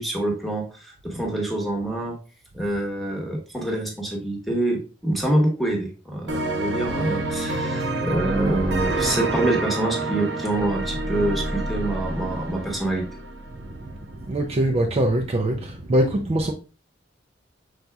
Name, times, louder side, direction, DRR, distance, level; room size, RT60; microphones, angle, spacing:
voice 1, 0.0-2.2 2.5-13.1, right 1 dB, ahead, 1.0 m, -26 dB
sound 1, 6.3-13.9, right 2 dB, 65° right, 0.7 m, -27 dB
voice 2, 13.6-16.5, right 1 dB, 35° right, 0.4 m, -23 dB
5.7 x 4.0 x 2.3 m
head